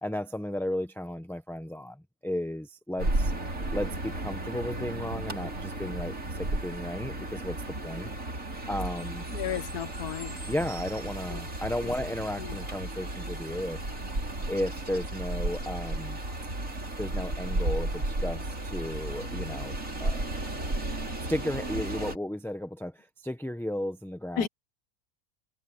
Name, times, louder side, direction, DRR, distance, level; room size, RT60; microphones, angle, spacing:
voice 1, 0.0-3.3 3.7-8.1 8.7-9.3 10.5-13.8 14.5-16.2 17.0-20.2 21.2-24.5, left 1 dB, ahead, 0.8 m, -34 dB
sound 1, 3.0-22.2, right 2 dB, 60° right, 5.7 m, -34 dB
voice 2, 9.3-10.3 11.3-11.4 11.8-11.9 12.4-12.6 24.4-24.5, left 9 dB, 85° left, 1.5 m, -33 dB
omnidirectional pair, 1.6 m